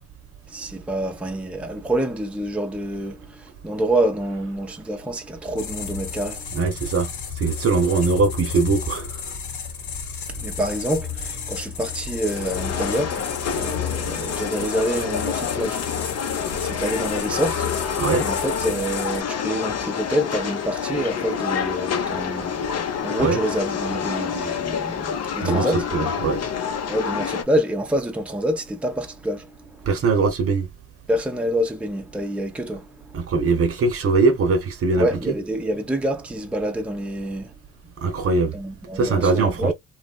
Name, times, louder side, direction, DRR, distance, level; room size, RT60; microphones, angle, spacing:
voice 1, 0.5-6.5 10.3-22.6 23.0-25.9 26.9-29.9 31.1-33.1 35.0-37.5 38.5-39.7, right 1 dB, 5° right, 0.6 m, -27 dB
sound 1, 5.6-19.2, left 7 dB, 75° left, 1.1 m, -33 dB
voice 2, 6.5-9.4 18.0-18.3 23.2-23.4 25.4-26.4 29.9-30.7 33.1-35.1 38.0-38.6 38.9-39.7, right 4 dB, 50° right, 0.8 m, -21 dB
sound 2, 12.2-27.4, left 7 dB, 55° left, 0.8 m, -27 dB
3.1 x 2.4 x 2.3 m
cardioid pair, 90°, 30 cm